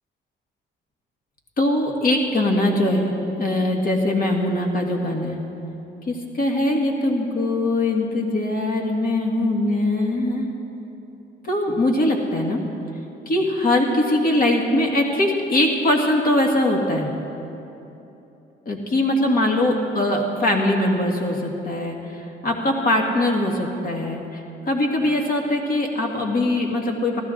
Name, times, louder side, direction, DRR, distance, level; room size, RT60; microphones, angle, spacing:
voice 1, 1.6-3.1 3.4-5.4 6.1-10.5 11.4-12.6 13.3-17.1 18.7-24.2 24.7-27.2, left 1 dB, 50° left, 1 dB, 1.8 m, -21 dB
15.0 x 13.0 x 3.8 m, 3.0 s
cardioid pair, 90°, 20 cm